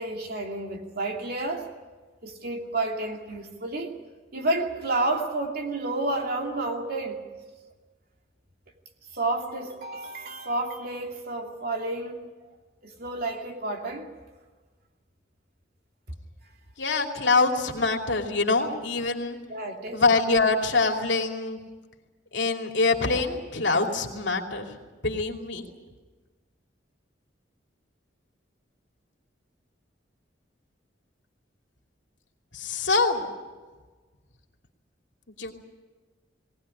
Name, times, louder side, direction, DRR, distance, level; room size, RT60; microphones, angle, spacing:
voice 1, 0.0-1.7 2.2-4.0 4.3-7.2 9.1-12.2 12.8-14.1 19.5-20.0, right 2 dB, 55° right, 2 dB, 2.7 m, -30 dB
voice 2, 16.8-19.4 19.9-21.6 22.3-24.7 25.0-25.6 32.5-33.3 35.4-35.5, left 3 dB, 70° left, 2 dB, 2.8 m, -24 dB
19.5 x 19.0 x 10.0 m, 1.3 s
head